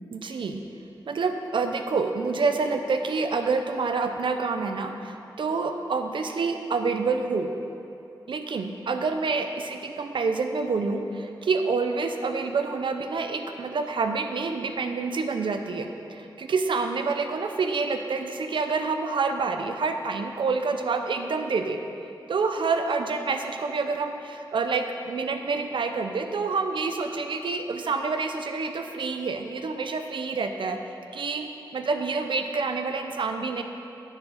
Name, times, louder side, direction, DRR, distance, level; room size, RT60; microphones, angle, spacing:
voice 1, 0.1-0.6 1.1-7.5 8.3-21.8 22.3-30.8 31.1-33.6, right 4 dB, 80° right, 6 dB, 0.6 m, -27 dB
9.7 x 6.2 x 5.0 m, 2.7 s
wide cardioid pair, 125°, 8 cm